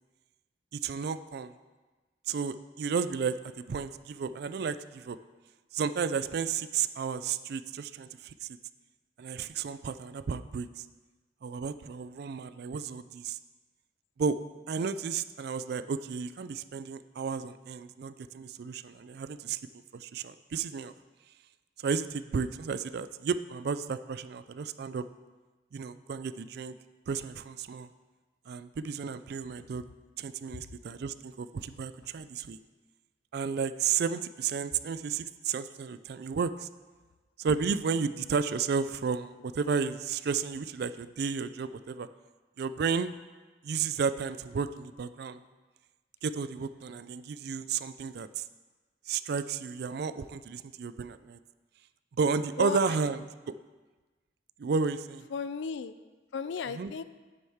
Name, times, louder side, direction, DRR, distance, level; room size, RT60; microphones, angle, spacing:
voice 1, 0.7-1.5 2.3-5.2 5.7-8.5 9.2-10.9 11.4-13.4 14.2-14.4 14.7-19.6 19.9-20.9 21.8-25.1 25.7-26.7 27.1-27.9 28.5-29.8 30.2-32.6 33.3-36.7 37.4-42.1 42.6-43.1 43.6-45.4 46.2-48.4 49.1-51.4 52.2-53.5 54.6-55.3 56.7-56.9, right 5 dB, 60° right, 13 dB, 0.4 m, -32 dB
voice 2, 52.6-53.0 55.3-55.9 56.3-57.0, left 6 dB, 75° left, 13 dB, 0.4 m, -35 dB
9.7 x 7.8 x 3.5 m, 1.3 s
head